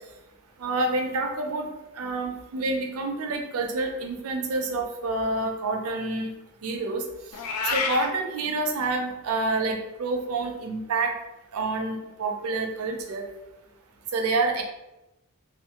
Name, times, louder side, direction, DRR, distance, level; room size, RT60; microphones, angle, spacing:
voice 1, 0.6-1.7 2.0-6.3 6.6-7.0 7.7-11.1 11.5-13.2 14.1-14.6, right 3 dB, 75° right, 3 dB, 0.5 m, -28 dB
Meow, 7.3-8.1, left 4 dB, 85° left, 0.4 m, -28 dB
2.5 x 2.4 x 2.8 m, 0.94 s
head